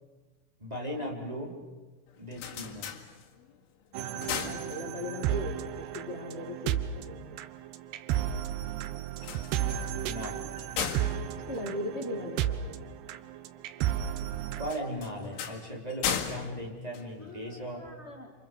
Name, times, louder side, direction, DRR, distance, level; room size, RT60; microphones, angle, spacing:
voice 1, 0.6-1.6 2.2-2.9 10.0-10.4 14.6-17.9, equal, 10° right, -2 dB, 4.5 m, -37 dB
sound 1, 2.1-3.6 4.0-5.3 9.1-12.6 14.6-17.7, left 8 dB, 80° left, 4.4 m, -37 dB
sound 2, 3.9-14.7, right 10 dB, 75° right, 2.7 m, -33 dB
voice 2, 4.1-7.4 11.4-12.8 17.2-18.3, left 1 dB, 55° left, 2 dB, 0.7 m, -39 dB
28.5 x 27.5 x 7.3 m, 1.2 s
omnidirectional pair, 5.5 m